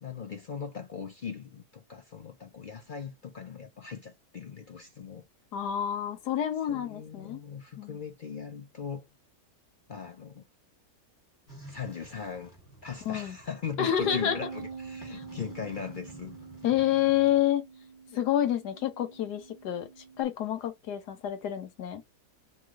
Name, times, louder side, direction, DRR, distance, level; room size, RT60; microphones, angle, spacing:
voice 1, 0.0-5.3 6.7-9.1 9.9-10.4 11.7-12.6 12.8-16.3, left 6 dB, 70° left, 0.4 m, -39 dB
voice 2, 5.5-7.4 7.8-8.0 13.0-13.4 13.8-14.4 15.1-15.2 16.6-17.6 18.1-19.9 20.2-22.0, left 11 dB, 90° left, 1.5 m, -28 dB
sound 1, 11.5-17.4, equal, 15° left, 1.4 m, -52 dB
Bass guitar, 14.0-20.2, right 4 dB, 40° right, 0.9 m, -44 dB
3.1 x 2.8 x 3.6 m
omnidirectional pair, 1.7 m